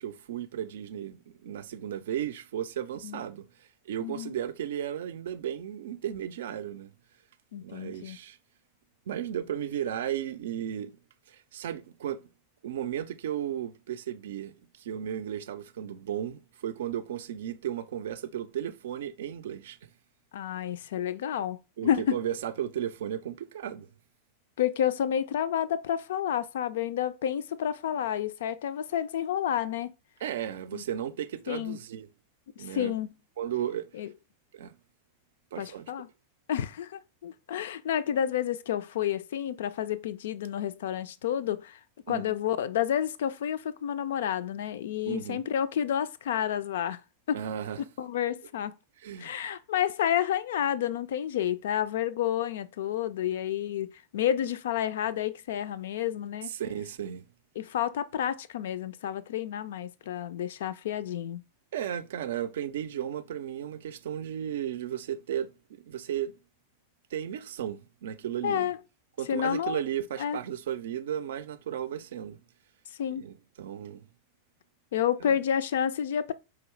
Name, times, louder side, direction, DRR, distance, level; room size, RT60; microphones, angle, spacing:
voice 1, 0.0-6.9 7.6-8.4 9.1-10.9 11.3-12.3 12.6-19.8 21.8-23.9 30.2-32.1 32.6-32.9 33.4-33.9 34.5-34.8 35.5-35.9 42.1-42.3 45.1-45.4 47.3-47.8 49.0-49.4 56.5-57.3 61.7-65.5 65.9-66.3 67.1-68.7 69.2-72.4 73.2-74.0 75.2-75.4, right 10 dB, 60° right, 0.4 m, -35 dB
voice 2, 4.0-4.4 7.5-8.2 20.3-22.2 24.6-29.9 30.7-30.8 31.5-31.8 32.6-33.1 33.9-34.1 35.6-36.1 36.5-41.8 42.1-47.0 47.3-47.4 48.0-48.7 49.2-56.5 57.6-61.4 68.4-68.8 69.3-69.8 70.2-70.4 73.0-73.2 74.9-76.3, left 10 dB, 60° left, 0.3 m, -30 dB
4.8 x 2.9 x 3.1 m
figure-of-eight pair, 90°, 0 cm